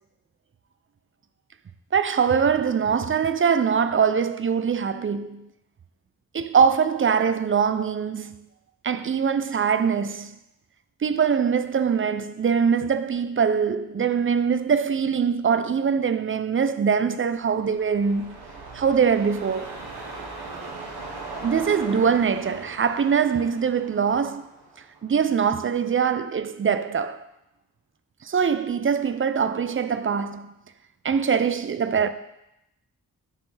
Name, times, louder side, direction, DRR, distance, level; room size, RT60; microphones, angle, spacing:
voice 1, 1.9-5.5 6.3-8.4 8.8-10.4 11.0-18.4 18.7-19.7 21.4-24.5 25.0-27.2 28.2-30.5 31.0-32.1, right 6 dB, 35° right, 0.4 m, -23 dB
sound 1, 17.2-25.6 26.0-26.1, right 3 dB, 85° right, 1.1 m, -39 dB
7.3 x 4.2 x 3.3 m
cardioid pair, 40°, 38 cm